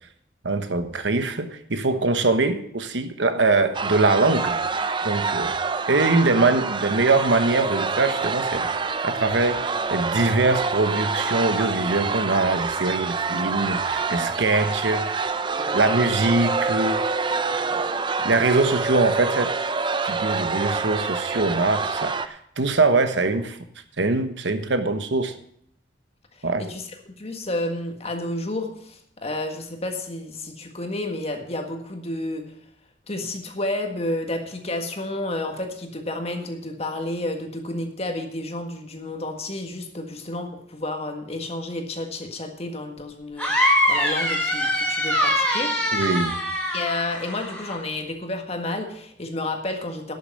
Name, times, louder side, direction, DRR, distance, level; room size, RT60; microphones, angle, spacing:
voice 1, 0.4-4.6 5.0-5.5 5.9-8.7 9.0-15.3 15.7-17.0 18.2-19.5 20.0-23.6 24.0-25.3 26.4-26.6 45.9-46.4, right 3 dB, 80° right, 9 dB, 1.1 m, -22 dB
sound 1, 3.7-22.3, right 4 dB, 25° right, 0.5 m, -26 dB
voice 2, 15.6-15.9 17.2-17.8 18.2-18.3 26.4-32.4 33.1-45.9 46.7-50.1, left 2 dB, 35° left, 4 dB, 1.7 m, -31 dB
sound 2, 43.4-47.8, equal, 5° left, 3.3 m, -23 dB
12.0 x 6.9 x 7.6 m, 0.67 s
head